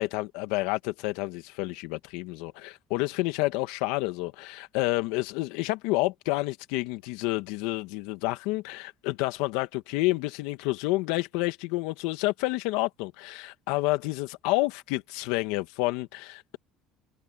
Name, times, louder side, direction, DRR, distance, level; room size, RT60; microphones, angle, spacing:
voice 1, 0.0-16.6, left 20 dB, 80° left, 1.9 m, -29 dB
cardioid pair, 115°, 0 cm